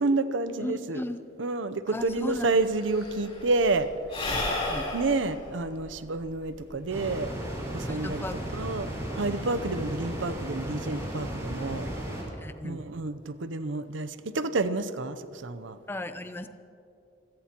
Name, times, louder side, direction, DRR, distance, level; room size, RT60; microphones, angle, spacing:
voice 1, 0.0-1.0 1.4-3.9 4.9-7.3 7.7-8.2 8.5-11.9 12.6-15.8, right 3 dB, 80° right, 11 dB, 0.7 m, -29 dB
voice 2, 0.6-1.3 1.9-2.5 4.7-4.8 7.9-8.6 12.4-12.9 15.9-16.5, left 1 dB, 10° left, 9 dB, 0.6 m, -36 dB
Sigh / Breathing, 2.0-2.1 2.3-7.1, left 2 dB, 30° left, 3.8 m, -34 dB
sound 1, 6.9-12.2, right 1 dB, 15° right, 4.8 m, -35 dB
26.5 x 16.5 x 3.0 m, 2.6 s
head